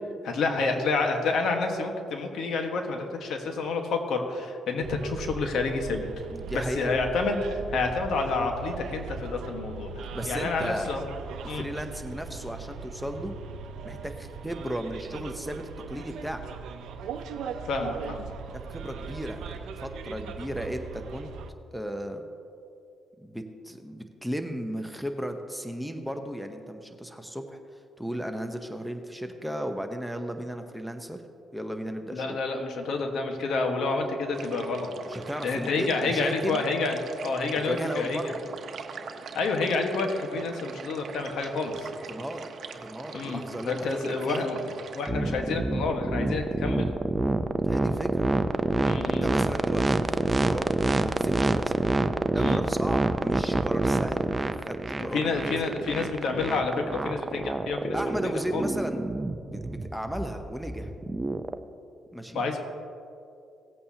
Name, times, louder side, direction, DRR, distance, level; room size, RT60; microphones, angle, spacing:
voice 1, 0.2-6.1 6.5-9.9 10.3-11.0 11.5-11.6 17.7-18.3 32.1-34.9 35.4-38.3 39.3-41.9 43.1-44.7 44.9-46.9 48.9-49.3 52.4-52.6 55.1-58.7 62.3-62.6, left 3 dB, 70° left, 4 dB, 1.4 m, -29 dB
Bus, 4.8-21.5, right 5 dB, 80° right, 0.6 m, -39 dB
voice 2, 6.3-6.9 10.1-10.9 11.4-13.3 13.8-16.4 18.5-21.3 21.7-22.2 23.2-27.6 28.0-31.2 31.5-32.4 35.0-36.6 37.6-38.4 42.1-42.4 42.8-44.5 45.2-45.5 47.6-48.2 49.0-51.7 52.3-55.4 55.6-55.8 57.9-59.1 59.5-60.9 62.1-62.4, equal, ahead, 5 dB, 0.8 m, -35 dB
sound 1, 34.3-45.1, right 5 dB, 55° right, 0.9 m, -42 dB
sound 2, 45.1-61.6, right 2 dB, 20° right, 0.5 m, -27 dB
17.5 x 8.5 x 2.8 m, 2.5 s
cardioid pair, 90°, 0 cm